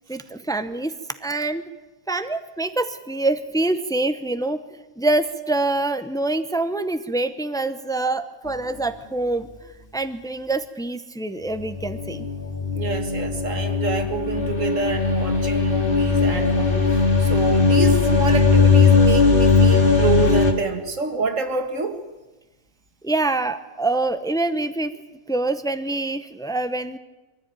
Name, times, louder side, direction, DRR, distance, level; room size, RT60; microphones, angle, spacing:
voice 1, 0.1-0.9 1.2-1.6 2.1-4.6 5.0-9.5 9.9-12.3 23.0-24.9 25.3-27.0, right 2 dB, 5° left, 10 dB, 0.6 m, -25 dB
sound 1, 11.6-20.5, left 4 dB, 40° left, 2.3 m, -18 dB
voice 2, 12.7-22.0, right 4 dB, 60° right, 6 dB, 2.1 m, -27 dB
22.5 x 15.0 x 9.0 m, 1.1 s
omnidirectional pair, 1.5 m